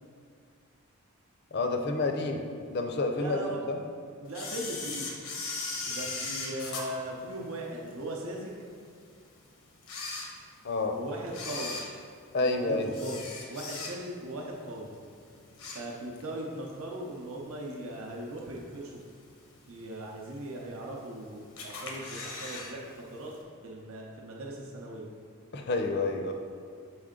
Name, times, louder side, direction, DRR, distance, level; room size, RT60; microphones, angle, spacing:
voice 1, 1.5-2.4 2.7-3.8 10.6-11.0 12.3-12.9 25.5-26.3, left 3 dB, 50° left, 4 dB, 0.5 m, -29 dB
voice 2, 3.1-3.9 4.2-5.1 5.8-8.6 10.9-11.8 12.4-13.2 13.5-14.9 15.7-19.0 19.7-23.3 23.6-25.1, right 1 dB, 70° right, -2 dB, 0.7 m, -39 dB
Camera, 4.3-7.9 8.4-8.5 9.2-9.3 9.8-10.8 11.3-14.3 14.6-14.9 15.3-16.3 16.7-16.8 17.7-17.8 18.4-18.8 19.2-19.3 19.5-19.6 19.8-19.9 20.6-21.1 21.6-22.7 23.0-23.1 23.3-23.4, left 3 dB, 85° left, 0.9 m, -38 dB
6.1 x 4.4 x 3.7 m, 2.3 s
head